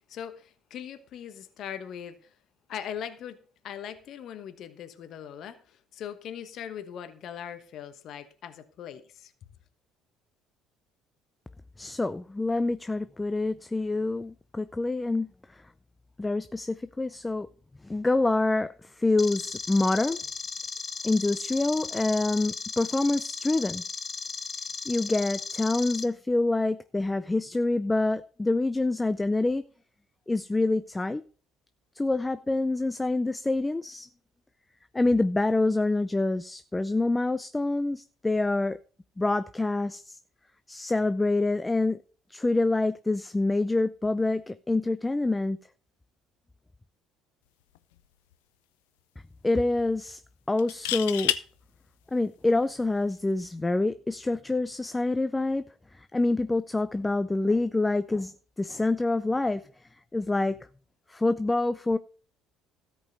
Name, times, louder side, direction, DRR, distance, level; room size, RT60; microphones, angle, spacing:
voice 1, 0.1-2.2 2.7-3.4 3.6-9.3, left 9 dB, 60° left, 1.1 m, -40 dB
voice 2, 11.8-15.3 16.2-17.5 17.8-20.2 21.0-23.8 24.9-29.6 30.3-31.2 32.0-34.1 34.9-38.8 39.2-40.2 40.7-42.0 42.3-45.6 49.4-50.2 50.5-51.3 52.1-55.7 56.1-58.3 58.6-59.6 60.1-60.6 61.1-62.0, left 2 dB, 15° left, 0.5 m, -26 dB
sound 1, 19.2-26.0, left 5 dB, 35° left, 0.9 m, -36 dB
sound 2, 47.7-48.0 48.3-48.4 50.6-51.4 53.2-53.5, left 14 dB, 85° left, 0.5 m, -29 dB
13.5 x 5.3 x 6.5 m
hypercardioid pair, 70°, 0 cm